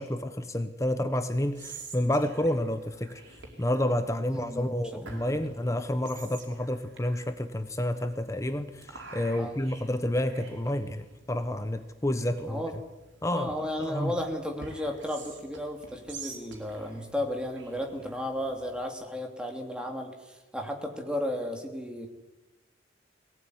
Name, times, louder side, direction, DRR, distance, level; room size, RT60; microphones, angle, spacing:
voice 1, 0.0-12.6 13.2-14.1, left 1 dB, 15° left, 9 dB, 1.0 m, -30 dB
Whispering, 1.3-18.9, right 3 dB, 85° right, 4.7 m, -49 dB
voice 2, 4.3-4.7 5.1-5.4 9.3-9.5 12.5-12.7 13.3-22.1, left 1 dB, 5° right, 3 dB, 3.1 m, -34 dB
22.0 x 18.0 x 9.7 m, 1.1 s
head